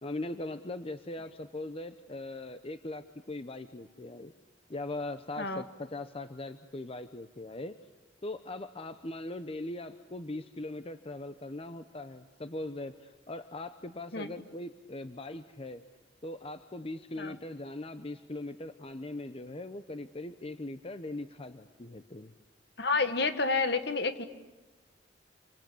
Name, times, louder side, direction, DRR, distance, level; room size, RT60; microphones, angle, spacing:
voice 1, 0.0-4.3 4.7-7.8 8.2-15.8 16.2-22.3, left 2 dB, 30° left, 10 dB, 0.9 m, -40 dB
voice 2, 22.8-24.2, left 3 dB, 65° left, 9 dB, 1.9 m, -29 dB
28.0 x 25.0 x 8.5 m, 1.1 s
head